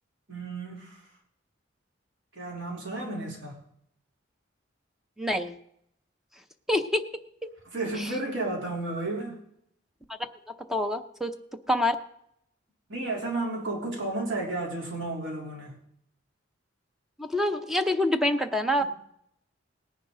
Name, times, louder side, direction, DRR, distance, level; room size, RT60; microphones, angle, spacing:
voice 1, 0.3-1.0 2.3-3.6 7.7-9.4 12.9-15.8 18.8-18.9, right 2 dB, 70° right, -1 dB, 3.6 m, -32 dB
voice 2, 5.2-5.5 6.7-7.0 8.0-8.1 10.7-11.3 11.7-12.0 17.2-18.8, left 1 dB, ahead, 7 dB, 0.7 m, -26 dB
18.5 x 10.5 x 3.9 m, 0.74 s
head